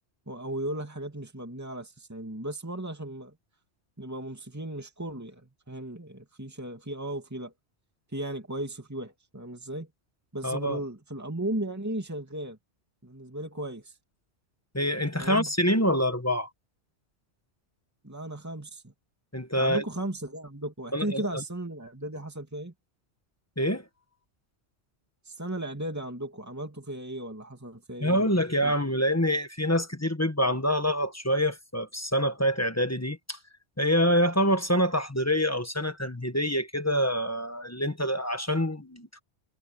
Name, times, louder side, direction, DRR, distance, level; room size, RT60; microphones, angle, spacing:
voice 1, 0.3-3.4 4.0-7.5 8.1-9.9 10.3-12.6 13.0-14.0 15.2-15.5 18.0-18.9 19.5-22.7 25.2-28.3 28.6-28.7, right 1 dB, 15° right, 2.7 m, -36 dB
voice 2, 10.4-10.8 14.7-16.5 19.3-19.8 20.9-21.4 23.6-23.8 28.0-33.4 33.8-39.2, equal, 15° left, 1.3 m, -26 dB
omnidirectional pair, 1.1 m